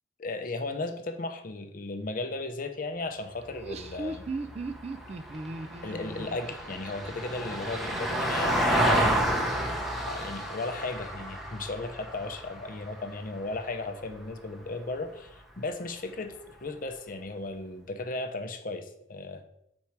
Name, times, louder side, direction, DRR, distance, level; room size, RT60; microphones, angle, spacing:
voice 1, 0.2-4.3 5.8-9.2 10.1-19.4, left 2 dB, 45° left, 7 dB, 0.6 m, -35 dB
Vehicle, 3.4-13.9 16.2-16.3, right 1 dB, ahead, 0.6 m, -31 dB
Laughter, 3.4-8.0, right 3 dB, 30° right, 0.3 m, -38 dB
4.6 x 4.4 x 5.7 m, 0.78 s
head